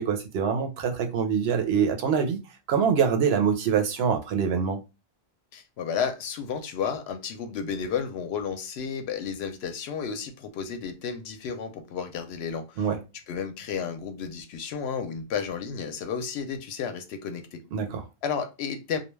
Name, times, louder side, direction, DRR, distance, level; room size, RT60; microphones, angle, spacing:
voice 1, 0.0-2.4 2.7-4.8 12.8-13.0 17.7-18.0, right 7 dB, 80° right, 0.9 m, -24 dB
voice 2, 5.5-12.9 13.3-17.6 18.2-19.0, left 6 dB, 85° left, 0.8 m, -32 dB
2.2 x 2.2 x 3.1 m
omnidirectional pair, 1.0 m